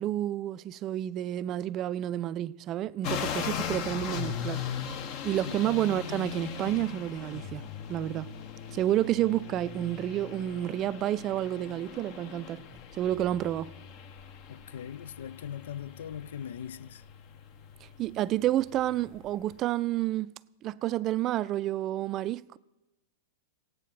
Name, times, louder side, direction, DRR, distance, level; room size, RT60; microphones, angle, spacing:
voice 1, 0.0-4.6 5.2-7.6 7.9-8.3 8.7-12.6 12.9-13.7 18.0-20.3 20.6-22.6, right 13 dB, 35° right, 0.4 m, -30 dB
sound 1, 3.0-19.6, left 8 dB, 45° left, 1.0 m, -39 dB
voice 2, 14.5-17.0, left 9 dB, 75° left, 0.4 m, -40 dB
16.5 x 9.2 x 5.9 m
hypercardioid pair, 115°, 0 cm